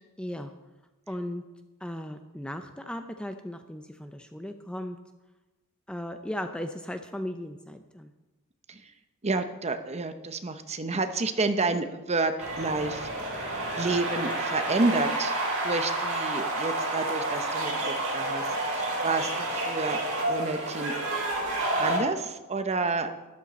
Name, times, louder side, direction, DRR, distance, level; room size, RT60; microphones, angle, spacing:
voice 1, 0.2-0.5 1.1-1.4 1.8-5.0 5.9-8.1, left 1 dB, 5° left, 6 dB, 0.5 m, -36 dB
voice 2, 9.2-13.1 13.8-15.3 15.6-18.4 18.7-20.0 20.3-20.9 21.8-23.1, right 3 dB, 30° right, 9 dB, 0.7 m, -29 dB
sound 1, 12.4-22.0, right 2 dB, 75° right, 4.4 m, -30 dB
13.0 x 11.0 x 4.2 m, 1.1 s
head